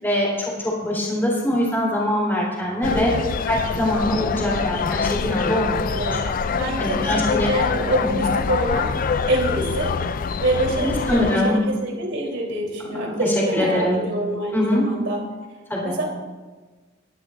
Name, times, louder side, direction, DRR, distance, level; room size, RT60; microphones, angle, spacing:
voice 1, 0.0-3.1 3.5-5.8 6.8-7.5 8.0-8.2 10.7-11.6 12.9-14.0 14.5-14.9 15.7-16.0, left 1 dB, 10° left, -5 dB, 4.2 m, -23 dB
sound 1, 2.8-11.4, left 5 dB, 45° left, 0.4 m, -25 dB
voice 2, 2.8-3.3 5.9-6.2 6.5-8.9 9.3-9.9 10.4-15.2 15.8-16.1, right 1 dB, 70° right, -1 dB, 3.7 m, -26 dB
21.0 x 12.0 x 2.6 m, 1.3 s
head